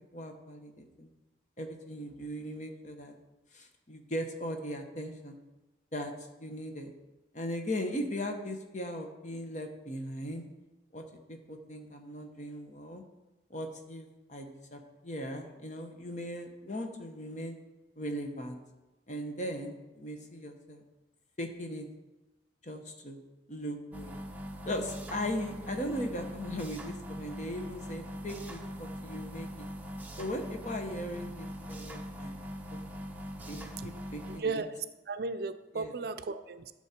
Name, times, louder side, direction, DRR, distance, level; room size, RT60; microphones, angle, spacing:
voice 1, 0.1-1.1 1.6-3.1 3.5-5.4 5.9-6.1 6.4-6.9 7.3-10.4 10.9-11.0 11.3-13.0 13.5-17.6 18.0-18.6 19.1-20.8 21.4-21.9 22.6-23.2 23.5-24.2 24.6-29.5 30.2-32.4 32.7-32.9 33.5-34.6 35.7-35.9, equal, 40° left, 4 dB, 1.0 m, -38 dB
sound 1, 23.9-34.4, equal, 10° right, 0.7 m, -42 dB
voice 2, 34.3-34.7 35.1-36.7, right 4 dB, 55° right, 10 dB, 0.5 m, -35 dB
11.5 x 6.3 x 4.3 m, 1.1 s
head